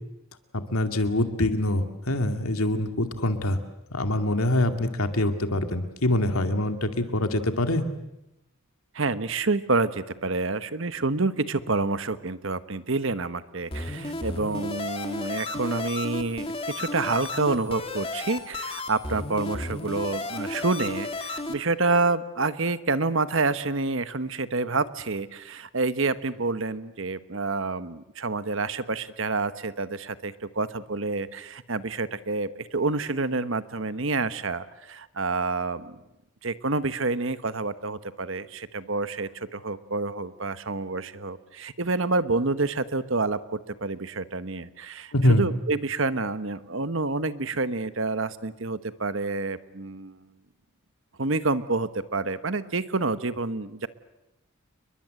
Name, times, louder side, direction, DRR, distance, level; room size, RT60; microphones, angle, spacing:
voice 1, 0.7-3.6 3.9-7.8 45.1-45.4, left 1 dB, 85° left, 7 dB, 2.4 m, -24 dB
voice 2, 8.9-36.0 36.4-50.2 51.2-53.9, right 3 dB, 60° right, 13 dB, 1.2 m, -28 dB
sound 1, 13.7-21.5, left 2 dB, 25° left, 2.3 m, -33 dB
29.5 x 22.0 x 7.7 m, 0.90 s
head